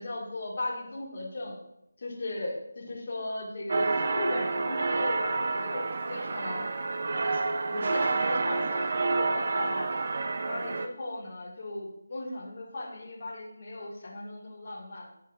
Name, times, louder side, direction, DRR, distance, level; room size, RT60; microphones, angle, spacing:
voice 1, 0.0-1.6 2.0-6.7 7.3-7.4 7.7-9.9 10.5-15.1, left 2 dB, 40° left, -3 dB, 1.6 m, -37 dB
sound 1, 3.7-10.9, right 3 dB, 45° right, 0.4 m, -29 dB
8.8 x 4.8 x 2.7 m, 0.82 s
figure-of-eight pair, 165°, 0 cm